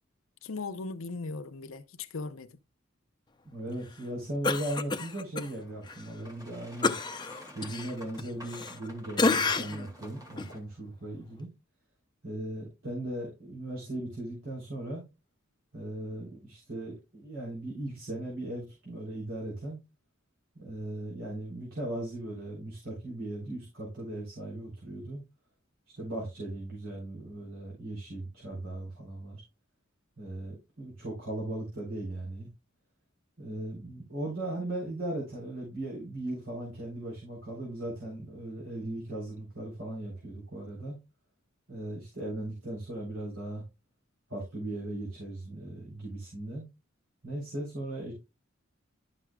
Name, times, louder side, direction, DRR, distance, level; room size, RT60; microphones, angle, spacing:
voice 1, 0.4-2.5, left 3 dB, 85° left, 0.7 m, -38 dB
voice 2, 3.4-6.9 7.5-11.5 12.2-15.0 15.7-19.8 20.6-25.2 25.9-29.4 30.2-32.5 33.4-41.0 41.7-43.6 44.3-46.6 47.2-48.1, right 1 dB, 75° right, 3.6 m, -38 dB
Cough, 4.4-5.5 5.9-6.0 6.8-8.9 9.2-9.9 10.4-10.5, left 3 dB, 20° left, 0.6 m, -29 dB
Boat Water vehicle, 5.6-10.6, equal, 20° right, 2.1 m, -50 dB
11.5 x 6.1 x 2.3 m
head